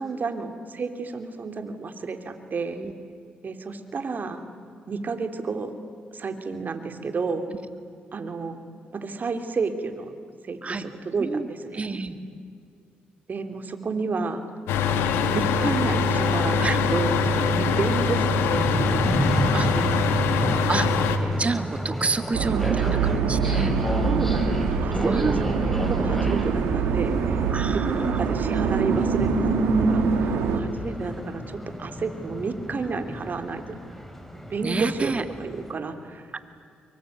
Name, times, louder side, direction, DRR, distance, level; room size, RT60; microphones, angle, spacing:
voice 1, 0.0-2.8 3.4-4.4 4.9-5.7 6.1-7.4 8.1-8.6 8.9-10.1 10.4-12.0 13.3-14.4 14.9-17.1 17.8-19.0 19.5-20.9 21.2-21.4 22.4-22.6 24.1-24.5 24.8-25.4 25.7-27.5 27.7-29.5 29.8-33.8 34.3-35.1 35.4-36.3, right 4 dB, 50° right, 7 dB, 3.1 m, -31 dB
voice 2, 11.7-12.2 16.6-16.8 17.6-17.7 19.5-19.7 20.7-20.9 21.4-23.7 24.1-24.3 25.0-25.4 27.5-28.2 34.6-35.2 36.3-36.4, right 3 dB, 35° right, 9 dB, 2.3 m, -28 dB
sound 1, 14.7-21.2, left 4 dB, 85° left, 1.8 m, -23 dB
sound 2, 17.1-35.7, equal, 5° left, 4.0 m, -32 dB
sound 3, 22.3-30.6, right 5 dB, 80° right, 2.5 m, -24 dB
25.5 x 23.5 x 9.3 m, 2.3 s
supercardioid pair, 55°, 4 cm